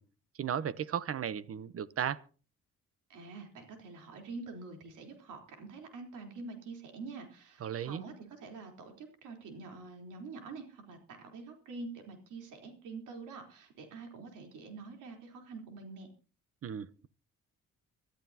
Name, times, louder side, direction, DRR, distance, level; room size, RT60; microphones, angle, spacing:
voice 1, 0.4-2.2 7.6-8.0 16.6-17.1, right 8 dB, 50° right, 0.9 m, -35 dB
voice 2, 3.1-16.1, right 3 dB, 85° right, 3.9 m, -46 dB
24.5 x 13.0 x 2.9 m
cardioid pair, 90°, 30 cm